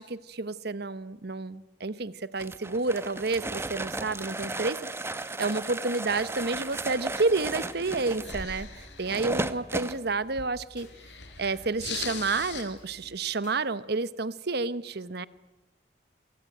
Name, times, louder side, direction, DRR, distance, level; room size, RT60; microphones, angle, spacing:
voice 1, 0.0-4.9 5.4-8.7 9.0-10.9 11.4-15.3, right 3 dB, 60° right, 16 dB, 1.0 m, -30 dB
sound 1, 2.4-10.0, right 2 dB, 15° right, 1.0 m, -35 dB
sound 2, 3.4-3.8 4.1-4.4 4.8-4.9 5.4-5.6 6.1-6.4 6.8-7.1 7.4-7.5 8.1-8.3 8.8-9.1 9.4-9.8 10.1-10.2 10.8-10.9 11.4-11.8 12.1-12.4 12.8-12.9 13.4-13.6, left 2 dB, 45° left, 5.7 m, -56 dB
sound 3, 6.2-13.2, left 5 dB, 75° left, 4.7 m, -42 dB
27.0 x 24.0 x 9.1 m, 1.0 s
head